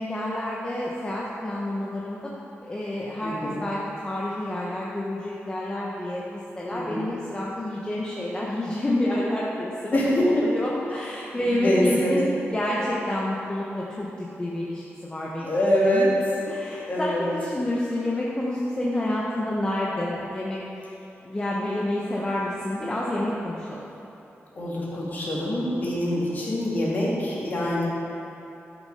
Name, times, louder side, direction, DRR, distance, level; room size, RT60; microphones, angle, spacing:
voice 1, 0.0-2.3 2.6-16.1 16.5-20.6 21.2-23.8, left 1 dB, 20° left, -5 dB, 1.0 m, -29 dB
voice 2, 3.2-3.6 6.6-7.1 9.9-10.4 11.5-12.2 15.4-16.1 16.9-17.2 24.5-27.9, equal, 40° left, -6 dB, 2.6 m, -24 dB
12.0 x 6.5 x 5.5 m, 3.0 s
wide cardioid pair, 155°, 5 cm